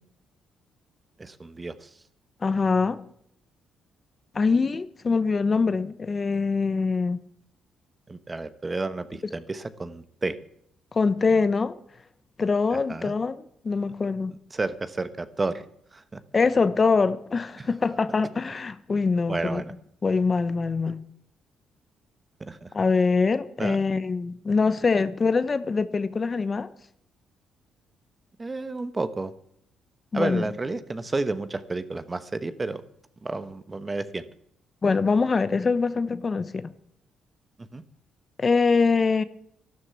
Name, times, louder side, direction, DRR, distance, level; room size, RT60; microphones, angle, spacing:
voice 1, 1.2-2.0 8.1-10.4 12.7-13.1 14.5-15.6 15.9-16.2 17.6-17.7 19.3-19.7 20.8-20.9 22.4-22.7 23.6-23.8 28.4-29.3 30.1-32.8 33.2-34.3 37.6-37.8, right 3 dB, 25° right, 1.0 m, -31 dB
voice 2, 2.4-3.0 4.3-7.2 10.9-11.8 12.4-13.4 13.6-14.3 16.3-19.6 20.0-21.0 22.7-26.7 30.1-30.4 34.8-36.7 38.4-39.2, left 4 dB, 35° left, 0.9 m, -23 dB
12.5 x 11.5 x 8.2 m
cardioid pair, 90°, 0 cm